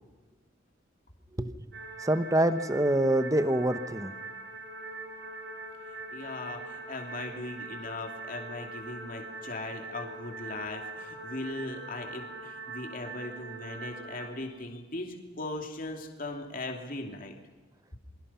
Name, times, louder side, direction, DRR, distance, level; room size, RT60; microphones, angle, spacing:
sound 1, 1.7-14.3, right 3 dB, 55° right, 5.1 m, -42 dB
voice 1, 2.0-4.1, right 1 dB, 15° right, 11 dB, 1.0 m, -25 dB
voice 2, 6.1-17.3, left 2 dB, 45° left, 2 dB, 2.9 m, -39 dB
28.0 x 22.5 x 5.7 m, 1.3 s
head